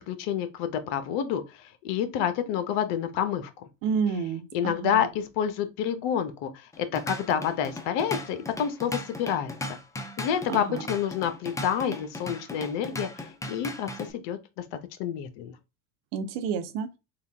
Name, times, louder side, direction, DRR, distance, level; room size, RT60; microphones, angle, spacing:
voice 1, 0.1-3.6 4.5-9.8 10.2-15.6, left 8 dB, 65° left, 0.9 m, -29 dB
voice 2, 3.8-5.1 10.5-10.8 16.1-16.9, right 6 dB, 70° right, 0.9 m, -30 dB
Drum kit / Drum, 6.7-14.1, left 1 dB, 10° left, 0.4 m, -37 dB
3.8 x 2.4 x 3.4 m
supercardioid pair, 100°, 46 cm